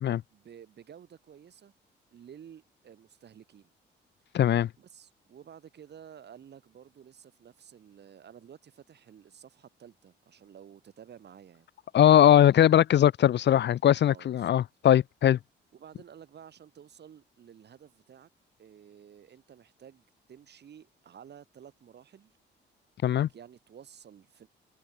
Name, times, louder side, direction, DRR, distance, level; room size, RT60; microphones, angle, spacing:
voice 1, 0.3-1.7 2.1-3.7 4.8-11.7 14.0-14.6 15.7-18.3 18.6-22.3 23.0-24.5, right 8 dB, 60° right, 7.1 m, -52 dB
voice 2, 4.3-4.7 11.9-15.4 23.0-23.3, left 11 dB, 60° left, 0.9 m, -20 dB
cardioid pair, 90°, 20 cm